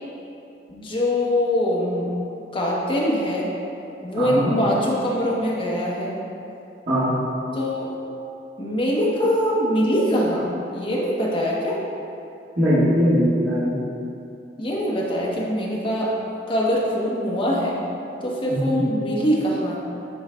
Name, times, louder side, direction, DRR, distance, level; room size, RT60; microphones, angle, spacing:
voice 1, 0.7-2.1 2.5-3.5 4.0-6.1 7.5-7.9 8.6-11.8 14.6-16.1 16.5-17.8 18.2-19.8, equal, 30° left, -4 dB, 0.9 m, -23 dB
voice 2, 4.2-4.5 6.9-7.1 12.6-13.7 18.5-18.8, equal, 45° right, -14 dB, 1.5 m, -20 dB
11.0 x 3.9 x 2.2 m, 2.7 s
head